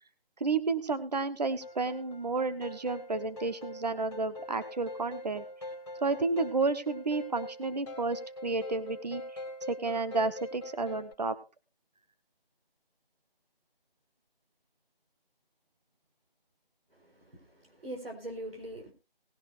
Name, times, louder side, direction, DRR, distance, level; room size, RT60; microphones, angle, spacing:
voice 1, 0.4-5.4 6.0-9.2 9.7-11.4, right 3 dB, 45° right, 12 dB, 1.1 m, -31 dB
sound 1, 1.6-11.1, left 1 dB, 25° left, 3.8 m, -43 dB
voice 2, 16.9-18.9, right 1 dB, 75° right, 3 dB, 4.6 m, -42 dB
19.0 x 11.0 x 2.5 m, 0.30 s
figure-of-eight pair, 170°, 30 cm